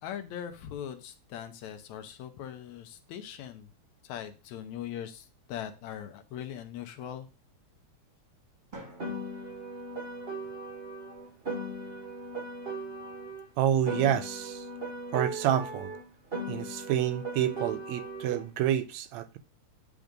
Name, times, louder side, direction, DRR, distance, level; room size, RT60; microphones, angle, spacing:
voice 1, 0.0-3.7 4.0-7.3, left 10 dB, 80° left, 2.0 m, -40 dB
Drum, 8.7-10.7, right 2 dB, 25° right, 1.2 m, -51 dB
Piano, 9.0-13.5 13.8-18.5, right 1 dB, 60° right, 0.6 m, -38 dB
voice 2, 13.6-14.7 15.1-15.9 16.5-19.4, right 10 dB, 80° right, 1.7 m, -28 dB
9.2 x 3.6 x 5.1 m
omnidirectional pair, 3.4 m